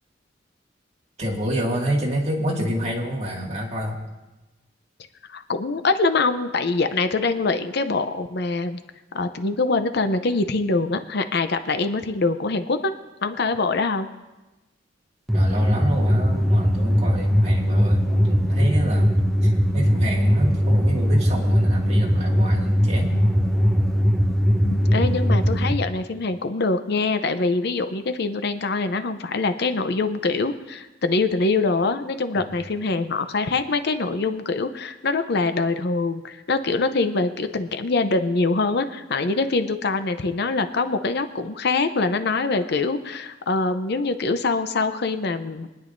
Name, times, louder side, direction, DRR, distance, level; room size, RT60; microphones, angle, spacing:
voice 1, 1.2-4.0 15.3-23.2 32.4-32.5, equal, 35° right, -2 dB, 2.1 m, -28 dB
voice 2, 5.3-8.8 9.1-12.9 13.2-14.1 24.6-45.7, left 3 dB, 60° left, 9 dB, 0.7 m, -24 dB
sound 1, 15.3-25.7, equal, ahead, 0.9 m, -20 dB
23.5 x 10.0 x 2.7 m, 1.1 s
head